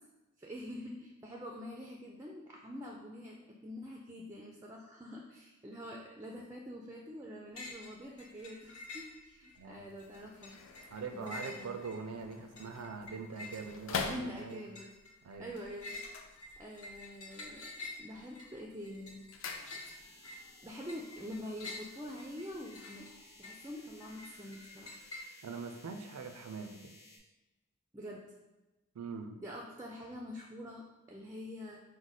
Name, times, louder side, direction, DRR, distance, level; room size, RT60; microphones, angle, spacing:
voice 1, 0.4-3.4 3.6-10.5 10.8-11.8 14.0-14.9 15.4-16.0 16.3-17.7 18.0-19.2 20.6-23.1 23.4-25.0 27.9-28.2 29.4-31.8, equal, 15° right, -1 dB, 0.3 m, -46 dB
sound 1, 7.6-7.9 8.2-9.6 10.0-25.2, left 2 dB, 85° left, 1.0 m, -49 dB
voice 2, 9.6-9.9 10.9-14.6 15.2-15.5 25.4-26.9 29.0-29.4, right 5 dB, 85° right, 7 dB, 0.4 m, -43 dB
sound 2, 9.8-14.8 15.9-17.0 17.3-17.8 18.2-20.2 20.5-20.6, left 5 dB, 60° left, 0.4 m, -44 dB
sound 3, 19.4-27.2, left 2 dB, 15° left, 0.8 m, -58 dB
4.7 x 2.1 x 4.0 m, 1.1 s
head